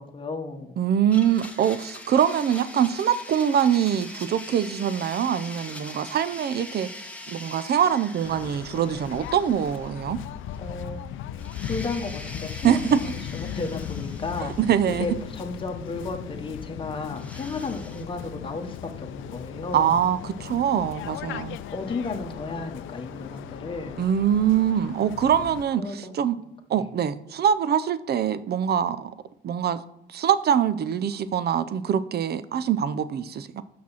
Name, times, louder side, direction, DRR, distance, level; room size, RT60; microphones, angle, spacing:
voice 1, 0.0-0.8 10.6-11.0 11.6-14.6 15.0-20.0 21.7-24.0 25.8-26.5 26.8-26.9, left 3 dB, 25° left, 1.3 m, -34 dB
voice 2, 0.8-6.9 7.3-10.2 12.6-13.0 14.6-15.1 19.7-21.6 24.0-25.8 26.1-26.4 26.7-29.1 29.4-29.8 30.1-33.6, right 9 dB, 55° right, 0.6 m, -23 dB
Domestic sounds home sounds, 1.1-10.3 10.5-10.6 11.4-15.3 17.1-18.0, left 2 dB, 5° left, 1.4 m, -42 dB
Waves surf, 8.2-25.6, left 10 dB, 80° left, 0.5 m, -37 dB
6.1 x 6.0 x 4.2 m
cardioid pair, 90°, 20 cm